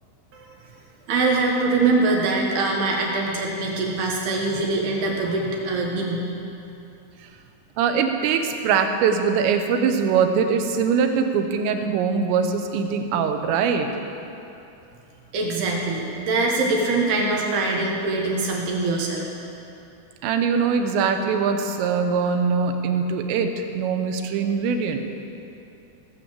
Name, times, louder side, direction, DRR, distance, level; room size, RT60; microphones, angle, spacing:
voice 1, 1.1-6.3 15.3-19.2, right 3 dB, 70° right, -1 dB, 3.2 m, -23 dB
voice 2, 7.8-13.9 20.2-25.0, right 6 dB, 90° right, 6 dB, 3.1 m, -22 dB
17.5 x 7.0 x 7.5 m, 2.8 s
omnidirectional pair, 5.1 m